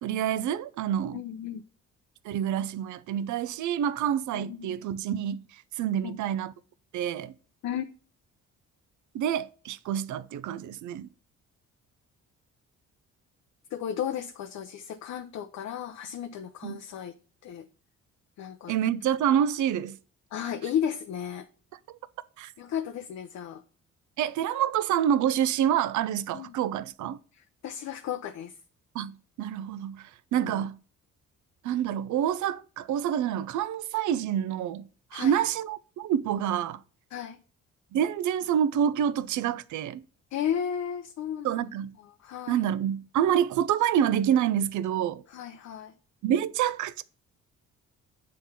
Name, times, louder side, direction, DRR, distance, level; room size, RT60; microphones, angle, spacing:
voice 1, 0.0-1.2 2.2-6.5 6.9-7.3 9.1-11.1 16.6-16.8 18.7-20.0 21.9-22.0 22.4-22.5 24.2-27.2 28.9-30.8 31.6-36.8 37.9-40.0 41.4-42.0 42.5-45.2 46.2-47.0, right 9 dB, 75° right, 0.6 m, -27 dB
voice 2, 1.1-1.6 4.3-4.8 6.0-6.2 7.6-7.9 13.7-17.1 17.4-17.7 18.4-18.7 20.3-21.5 22.6-23.6 26.3-26.6 27.3-28.5 30.4-30.7 35.1-35.4 37.1-37.4 40.3-41.7 42.0-42.7 45.3-45.9, left 9 dB, 65° left, 0.6 m, -34 dB
7.3 x 3.9 x 5.6 m
cardioid pair, 90°, 30 cm